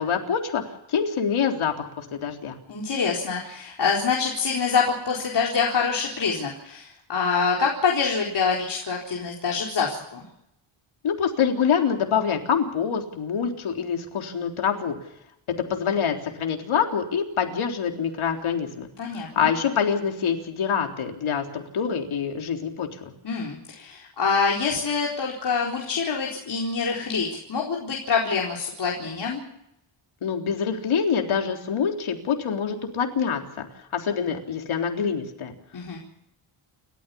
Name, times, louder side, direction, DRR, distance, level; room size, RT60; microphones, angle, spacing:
voice 1, 0.0-2.6 11.0-15.0 15.7-23.1 30.2-33.7 33.9-35.5, left 7 dB, 80° left, 3 dB, 3.7 m, -26 dB
voice 2, 2.7-10.2 19.0-19.5 23.2-29.4 35.7-36.0, left 5 dB, 55° left, -2 dB, 4.3 m, -25 dB
29.5 x 14.0 x 7.1 m, 0.80 s
wide cardioid pair, 140°, 49 cm